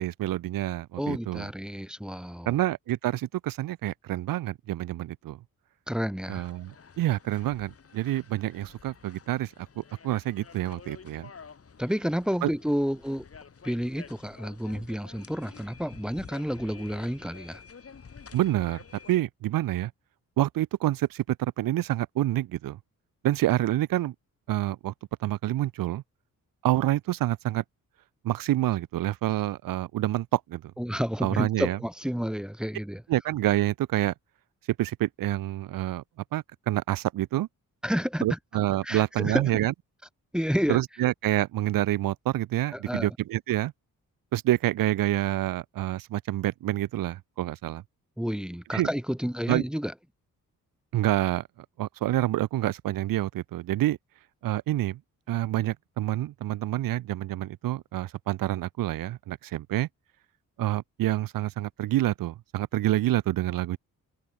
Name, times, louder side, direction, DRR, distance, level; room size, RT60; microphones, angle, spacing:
voice 1, 0.0-1.5 2.5-5.4 6.3-6.7 7.0-11.3 12.4-12.5 18.3-18.8 19.1-19.9 20.4-22.8 23.2-24.1 24.5-24.9 25.2-26.0 26.6-27.6 28.2-30.6 31.2-31.8 33.1-34.1 34.8-36.0 36.3-37.5 38.2-39.7 40.7-43.7 44.3-47.8 48.7-48.9 49.5-49.6 50.9-51.4 51.8-54.0 54.4-55.0 55.3-59.9 60.6-63.8, right 14 dB, 75° right, 0.6 m, -27 dB
voice 2, 1.0-2.5 5.9-6.4 11.8-13.2 13.6-17.6 30.8-33.0 37.8-38.4 38.8-39.4 40.3-40.8 42.7-43.1 48.2-49.9, equal, 5° right, 0.4 m, -30 dB
sound 1, 6.2-19.2, left 6 dB, 40° left, 2.3 m, -50 dB
cardioid pair, 75°, 34 cm